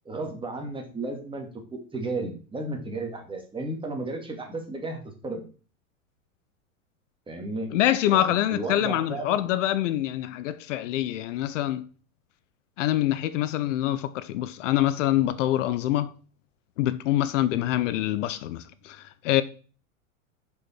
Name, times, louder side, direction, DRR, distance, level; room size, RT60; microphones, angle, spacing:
voice 1, 0.1-5.4 7.3-7.7 8.1-9.4, right 2 dB, 10° right, 1.9 m, -33 dB
voice 2, 7.7-11.9 12.8-16.1 16.8-19.4, left 13 dB, 60° left, 0.6 m, -25 dB
6.3 x 5.4 x 4.3 m
hypercardioid pair, 110°, 41 cm